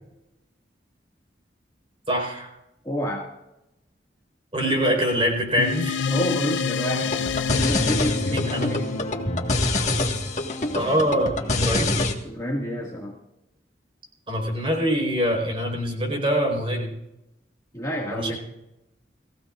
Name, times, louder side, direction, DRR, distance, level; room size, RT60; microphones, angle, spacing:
voice 1, 2.1-2.5 4.5-6.0 8.3-8.7 10.7-12.0 14.3-16.9 18.1-18.4, equal, 30° right, 1 dB, 4.6 m, -24 dB
voice 2, 2.8-3.3 6.1-8.9 12.2-13.1 17.7-18.4, equal, 20° left, -3 dB, 2.0 m, -29 dB
sound 1, 5.6-10.4, left 6 dB, 90° left, 0.5 m, -29 dB
sound 2, 7.0-12.1, left 2 dB, 40° left, 1.6 m, -25 dB
23.0 x 15.5 x 2.5 m, 0.90 s
head